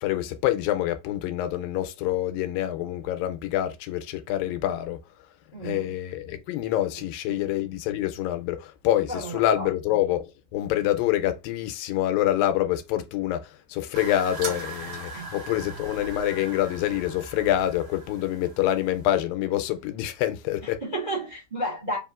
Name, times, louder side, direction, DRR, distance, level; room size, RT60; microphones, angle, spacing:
voice 1, 0.0-5.0 5.6-20.8, left 13 dB, 85° left, 2.3 m, -26 dB
voice 2, 5.5-5.9 7.3-7.4 9.1-9.7 15.1-15.3 20.6-22.0, right 1 dB, 30° right, 0.8 m, -32 dB
sound 1, 13.9-19.0, right 3 dB, 80° right, 0.9 m, -39 dB
5.2 x 2.8 x 2.4 m
omnidirectional pair, 4.0 m